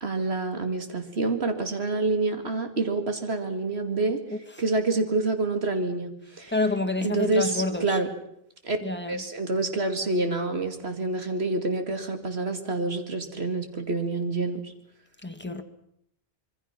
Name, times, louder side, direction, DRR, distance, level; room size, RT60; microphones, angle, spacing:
voice 1, 0.0-4.2 4.6-6.5 7.0-8.1 8.6-8.8 9.1-14.7, right 3 dB, 90° right, 2.7 m, -27 dB
voice 2, 4.3-4.6 6.5-8.0 8.8-9.2 15.2-15.6, left 2 dB, 10° left, 1.7 m, -28 dB
26.0 x 22.5 x 6.0 m
omnidirectional pair, 1.0 m